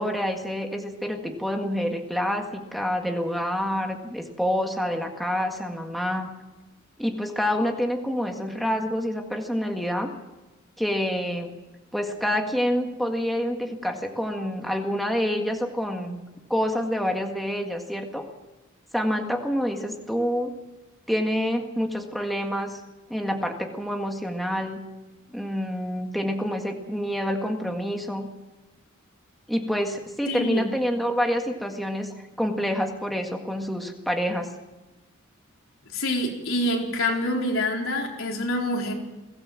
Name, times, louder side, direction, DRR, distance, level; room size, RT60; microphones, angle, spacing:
voice 1, 0.0-6.3 7.0-10.1 10.8-11.5 11.9-16.2 16.5-18.3 18.9-20.5 21.1-22.8 23.1-24.8 25.3-28.3 29.5-34.5, equal, ahead, 3 dB, 1.8 m, -27 dB
voice 2, 30.3-30.7 35.9-38.9, left 1 dB, 70° left, 0 dB, 4.4 m, -26 dB
22.0 x 17.5 x 7.5 m, 1.1 s
head